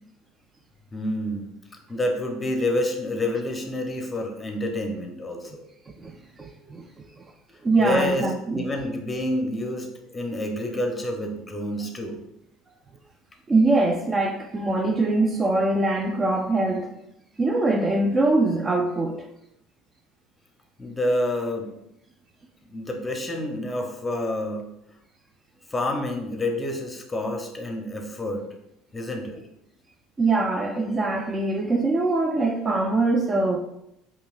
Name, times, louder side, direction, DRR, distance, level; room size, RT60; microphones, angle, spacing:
voice 1, 0.9-1.5 1.9-5.6 7.8-12.2 20.8-21.7 22.7-24.6 25.7-28.4 28.9-29.4, left 1 dB, 20° left, 0.8 m, -28 dB
voice 2, 5.9-7.1 7.6-8.7 13.5-16.9 17.4-19.3 30.2-33.6, right 2 dB, 25° right, 0.4 m, -23 dB
4.6 x 2.9 x 2.5 m
supercardioid pair, 85°, 0 cm